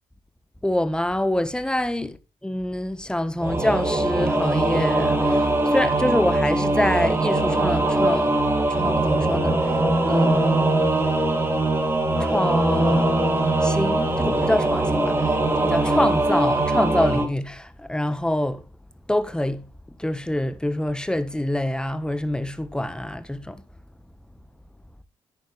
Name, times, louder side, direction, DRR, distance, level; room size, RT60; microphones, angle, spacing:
voice 1, 0.6-8.3 8.7-9.8 10.1-10.6 12.2-18.6 19.1-19.7 20.0-23.6, left 1 dB, 5° left, 1.4 m, -26 dB
Singing / Musical instrument, 3.4-17.3, right 2 dB, 20° right, 2.5 m, -21 dB
10.5 x 9.0 x 3.4 m
supercardioid pair, 60°, 12 cm